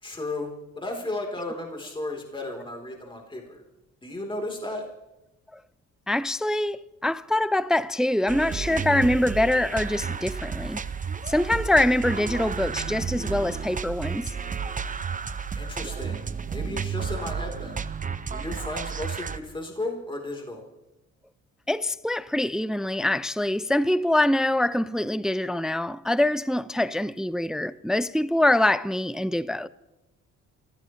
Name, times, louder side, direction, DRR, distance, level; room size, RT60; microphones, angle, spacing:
voice 1, 0.0-3.6 4.0-4.8 15.6-17.8 18.3-20.6, left 2 dB, 15° left, 3.5 m, -34 dB
voice 2, 6.1-10.8 11.3-14.3 21.7-29.7, left 1 dB, ahead, 0.5 m, -24 dB
sound 1, 8.3-19.4, right 6 dB, 25° right, 0.8 m, -32 dB
28.5 x 15.5 x 3.2 m
cardioid pair, 90°, 30 cm